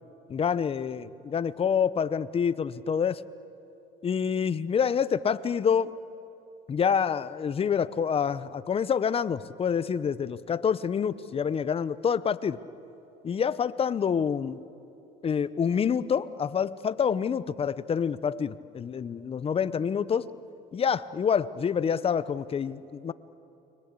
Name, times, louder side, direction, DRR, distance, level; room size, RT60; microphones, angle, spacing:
voice 1, 0.3-3.2 4.0-5.9 6.7-12.6 13.2-14.6 15.2-20.3 20.7-23.1, left 7 dB, 25° left, 16 dB, 0.8 m, -27 dB
29.5 x 23.5 x 8.4 m, 2.9 s
supercardioid pair, 115°, 21 cm